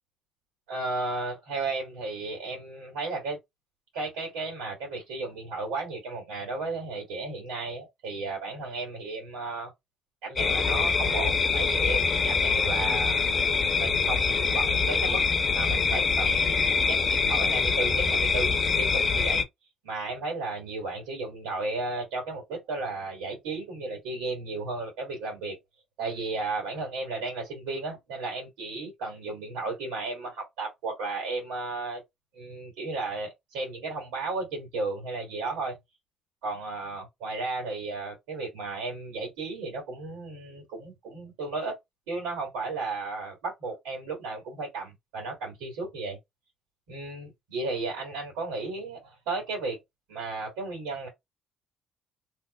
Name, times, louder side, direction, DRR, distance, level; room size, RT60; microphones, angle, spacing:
voice 1, 0.7-3.4 3.9-9.7 10.2-13.3 13.8-15.2 15.5-16.6 16.9-19.4 19.8-25.6 26.0-32.0 32.3-35.8 36.4-41.7 42.1-46.2 46.9-49.8 50.1-51.1, right 3 dB, 90° right, 1.8 m, -34 dB
sound 1, 10.4-19.4, left 5 dB, 45° left, 0.7 m, -24 dB
3.1 x 2.1 x 4.1 m
supercardioid pair, 70°, 0 cm